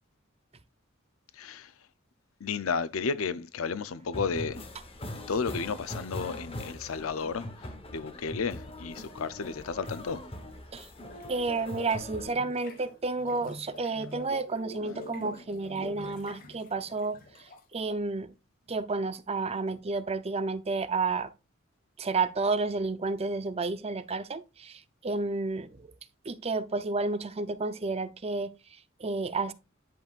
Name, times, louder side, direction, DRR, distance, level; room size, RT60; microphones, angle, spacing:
voice 1, 1.3-1.7 2.4-4.6 5.3-7.5 7.9-10.3 14.9-15.0, left 5 dB, 90° left, 0.6 m, -32 dB
sound 1, 4.1-12.3, left 1 dB, 30° left, 1.1 m, -41 dB
sound 2, 11.0-17.7, left 1 dB, 45° left, 1.6 m, -46 dB
voice 2, 11.3-18.3 18.7-21.3 22.0-25.9 26.2-29.5, right 3 dB, 30° right, 0.5 m, -31 dB
10.5 x 5.3 x 2.4 m
head